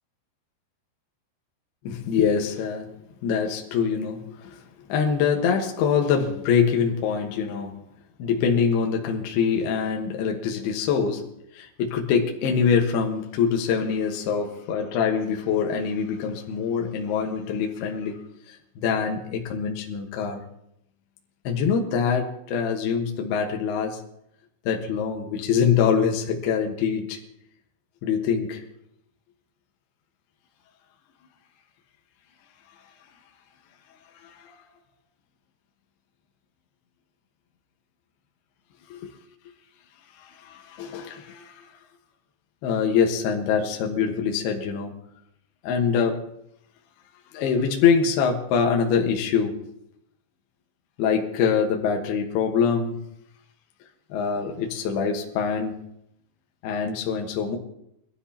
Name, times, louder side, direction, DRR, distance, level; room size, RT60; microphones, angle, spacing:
voice 1, 1.8-2.9 3.2-4.6 4.9-7.8 8.2-11.3 11.5-18.2 18.5-20.4 21.4-24.0 24.7-27.2 28.0-28.6 34.2-34.4 38.9-39.1 40.2-41.6 42.6-45.0 45.6-46.2 47.3-49.7 51.0-53.0 54.1-55.8 56.6-57.6, left 6 dB, 70° left, 2.9 m, -24 dB
22.0 x 13.0 x 2.8 m
omnidirectional pair, 5.3 m